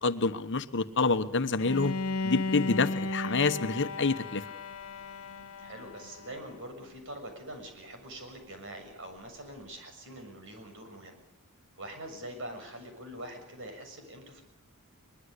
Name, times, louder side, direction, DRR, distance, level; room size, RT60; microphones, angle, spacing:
voice 1, 0.0-2.0 2.2-4.4, left 3 dB, 60° left, 10 dB, 1.2 m, -27 dB
Bowed string instrument, 1.6-6.6, left 3 dB, 75° left, 1.0 m, -35 dB
voice 2, 5.6-11.2 11.8-14.4, right 1 dB, 60° right, 5 dB, 7.1 m, -44 dB
23.0 x 21.5 x 8.2 m, 0.79 s
head